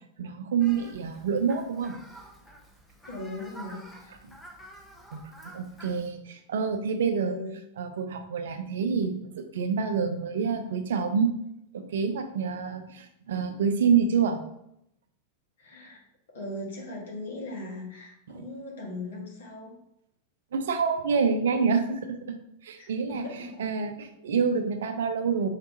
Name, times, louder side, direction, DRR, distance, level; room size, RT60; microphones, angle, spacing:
voice 1, 0.2-1.9 5.1-7.4 7.8-11.3 11.7-14.4 18.3-18.4 20.5-22.4 22.6-25.5, right 6 dB, 60° right, 8 dB, 0.5 m, -27 dB
Fowl, 0.6-6.1, right 1 dB, 10° left, 0.9 m, -49 dB
voice 2, 3.0-4.2 7.2-7.6 15.6-16.0 16.3-19.8 22.7-23.6, left 1 dB, 65° left, -2 dB, 1.5 m, -39 dB
5.6 x 3.4 x 2.7 m, 0.77 s
figure-of-eight pair, 90°, 0 cm